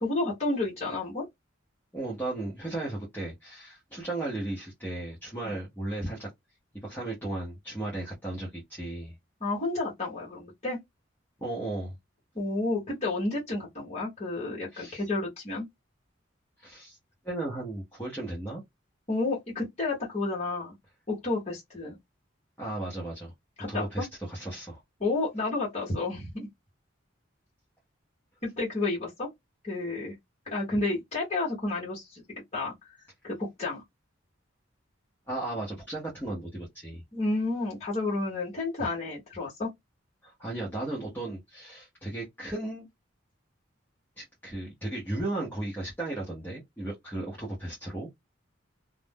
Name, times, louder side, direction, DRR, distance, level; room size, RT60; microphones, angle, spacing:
voice 1, 0.0-1.3 5.4-5.6 9.4-10.8 12.3-15.7 19.1-20.7 21.1-22.0 23.6-24.1 25.0-26.5 28.4-29.3 29.6-30.1 30.5-32.2 32.5-32.9 33.2-33.8 37.1-39.7, left 2 dB, 35° left, 1.1 m, -31 dB
voice 2, 1.9-6.3 6.8-9.1 11.4-12.0 14.7-15.0 16.6-17.0 17.2-18.6 22.6-23.3 23.7-24.8 35.3-37.0 38.8-38.9 40.2-42.9 44.2-48.1, right 2 dB, 10° left, 0.8 m, -35 dB
2.5 x 2.1 x 3.4 m
head